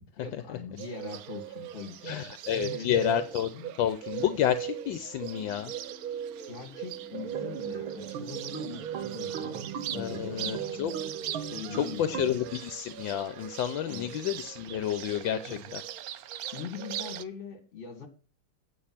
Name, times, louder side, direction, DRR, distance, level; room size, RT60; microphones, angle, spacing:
voice 1, 0.2-3.2 3.5-3.7 6.5-9.6 9.9-10.8 11.3-12.3 13.8-14.1 15.5-15.6 16.5-18.1, left 5 dB, 35° left, 2.2 m, -42 dB
Bird, 0.8-17.2, right 11 dB, 75° right, 0.8 m, -39 dB
voice 2, 2.0-3.5 3.8-5.7 9.9-10.9 11.7-15.8, left 11 dB, 75° left, 1.4 m, -30 dB
sound 1, 3.1-11.7, left 1 dB, 5° right, 3.7 m, -57 dB
sound 2, 7.1-12.4, right 7 dB, 90° right, 1.8 m, -39 dB
8.6 x 7.5 x 5.7 m
omnidirectional pair, 2.2 m